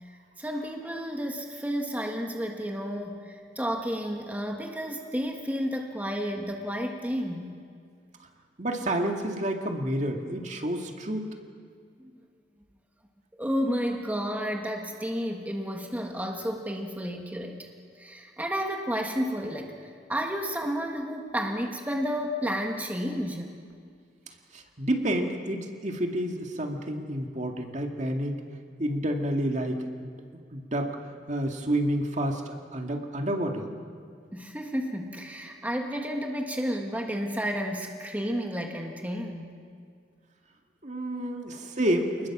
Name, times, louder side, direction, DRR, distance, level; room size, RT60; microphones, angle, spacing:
voice 1, 0.0-7.6 12.0-12.1 13.4-17.7 17.9-23.5 34.3-39.5 41.1-41.4, equal, 10° right, 2 dB, 1.6 m, -31 dB
voice 2, 8.6-11.3 24.5-28.4 28.8-30.1 30.5-30.9 31.3-33.7 40.8-42.3, right 1 dB, 45° right, 3 dB, 2.1 m, -29 dB
28.0 x 20.0 x 7.3 m, 2.2 s
head